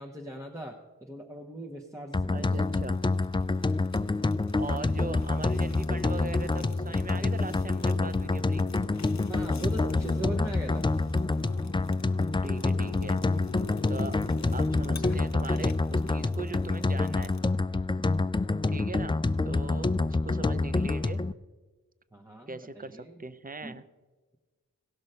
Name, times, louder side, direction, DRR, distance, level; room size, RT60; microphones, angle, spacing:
voice 1, 0.0-2.8 9.3-10.8 22.1-23.2 23.6-23.8, right 1 dB, 10° right, 0 dB, 1.0 m, -39 dB
sound 1, 2.1-21.3, left 3 dB, 15° left, 0.3 m, -27 dB
voice 2, 2.3-3.0 4.6-8.6 12.4-13.2 13.9-14.2 14.5-17.3 18.7-19.1 19.4-21.2 22.5-23.8, right 3 dB, 25° right, 13 dB, 0.6 m, -40 dB
Fire, 2.4-17.5, left 5 dB, 50° left, 0.8 m, -45 dB
17.0 x 6.1 x 5.5 m, 1.3 s
wide cardioid pair, 60°, 35 cm